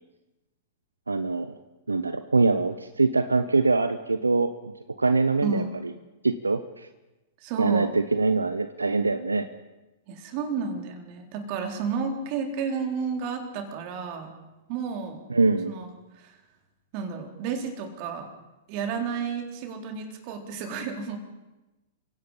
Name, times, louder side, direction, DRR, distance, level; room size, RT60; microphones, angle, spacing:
voice 1, 1.1-1.6 1.9-4.7 5.0-5.9 6.2-6.9 7.6-9.5 15.3-15.7, right 3 dB, 85° right, 11 dB, 0.8 m, -24 dB
voice 2, 5.4-5.8 7.4-7.9 10.1-14.3 14.7-15.2 15.6-15.9 16.1-16.4 16.9-18.3 18.7-21.2, right 5 dB, 45° right, 4 dB, 3.9 m, -31 dB
28.5 x 17.0 x 5.7 m, 1.1 s
figure-of-eight pair, 105°, 0 cm